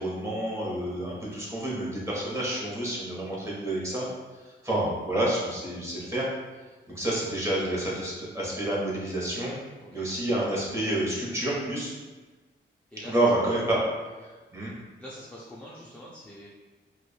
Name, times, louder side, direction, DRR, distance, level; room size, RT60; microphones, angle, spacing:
voice 1, 0.0-4.1 4.6-6.3 6.9-9.6 9.9-11.9 13.0-13.8 14.2-14.7, right 1 dB, 15° right, -5 dB, 0.9 m, -29 dB
voice 2, 9.8-10.1 12.9-13.2 15.0-16.5, equal, 5° left, -6 dB, 0.4 m, -45 dB
4.9 x 2.3 x 2.2 m, 1.3 s
wide cardioid pair, 150°, 19 cm